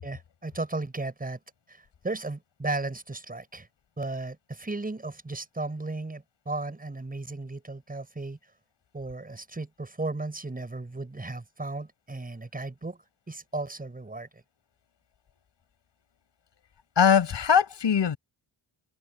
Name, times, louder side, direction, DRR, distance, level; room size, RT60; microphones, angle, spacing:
voice 1, 0.0-1.4 1.7-3.7 4.0-8.4 8.9-13.0 13.3-14.4, right 2 dB, 20° right, 6.6 m, -35 dB
voice 2, 17.0-18.2, left 7 dB, 65° left, 5.8 m, -21 dB
open air
wide cardioid pair, 160°, 46 cm